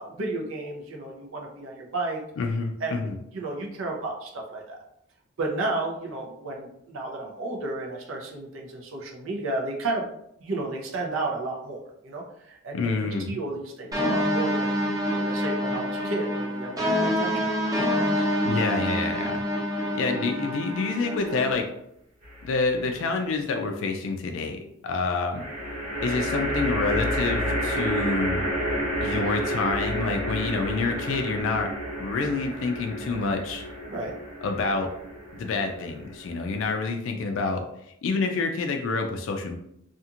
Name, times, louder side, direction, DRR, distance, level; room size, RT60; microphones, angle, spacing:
voice 1, 0.0-2.2 2.8-4.8 5.4-10.0 10.4-17.5 18.1-18.3 32.3-32.4 33.9-34.1, right 2 dB, 75° right, 0 dB, 0.6 m, -33 dB
voice 2, 2.4-3.2 12.7-13.4 18.4-19.4 19.9-21.7 22.4-25.4 26.0-28.4 29.0-31.7 32.0-33.6 34.4-34.9 35.4-37.6 38.0-39.6, left 4 dB, 70° left, 4 dB, 0.3 m, -27 dB
sound 1, 13.9-21.5, equal, 20° right, 0.6 m, -27 dB
sound 2, 22.2-22.9 25.3-36.7, equal, 45° right, 0.9 m, -30 dB
2.8 x 2.4 x 2.4 m, 0.76 s
head